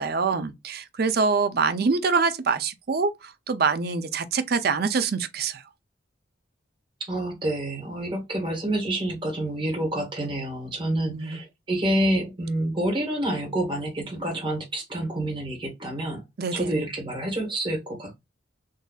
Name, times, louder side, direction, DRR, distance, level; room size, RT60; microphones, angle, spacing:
voice 1, 0.0-5.6 11.0-11.4 16.4-16.7, right 4 dB, 55° right, 0.5 m, -25 dB
voice 2, 7.1-16.2 16.5-18.1, right 1 dB, 25° right, 1.4 m, -28 dB
3.8 x 2.6 x 2.3 m
head